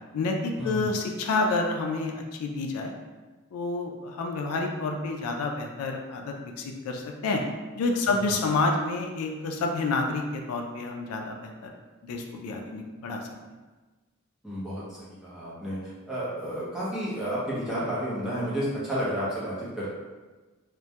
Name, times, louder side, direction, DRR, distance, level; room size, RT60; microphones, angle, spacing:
voice 1, 0.1-2.9 3.5-7.4 7.8-11.7 12.0-13.3, left 3 dB, 85° left, 2 dB, 0.3 m, -29 dB
voice 2, 14.4-14.8 15.2-15.8 16.1-19.9, equal, ahead, -10 dB, 0.6 m, -31 dB
2.2 x 2.1 x 2.7 m, 1.3 s
head